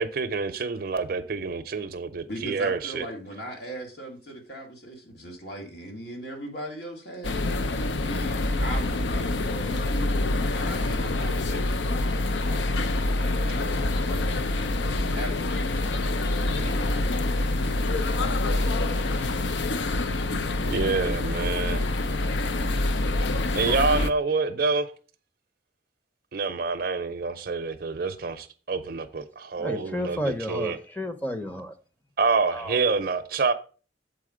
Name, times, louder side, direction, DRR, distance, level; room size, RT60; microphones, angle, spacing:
voice 1, 0.0-3.1 20.7-21.8 23.5-24.9 26.3-30.2 30.5-30.8 32.2-33.5, right 4 dB, 60° right, 0.5 m, -27 dB
voice 2, 2.3-7.4 8.1-9.9 10.5-11.7 12.5-14.4 15.1-16.0 16.5-17.2, equal, 65° left, 2.2 m, -39 dB
sound 1, 7.2-24.1, left 2 dB, 90° left, 0.6 m, -26 dB
voice 3, 29.6-31.7 32.5-32.8, equal, 10° left, 0.7 m, -32 dB
7.5 x 4.1 x 4.9 m
head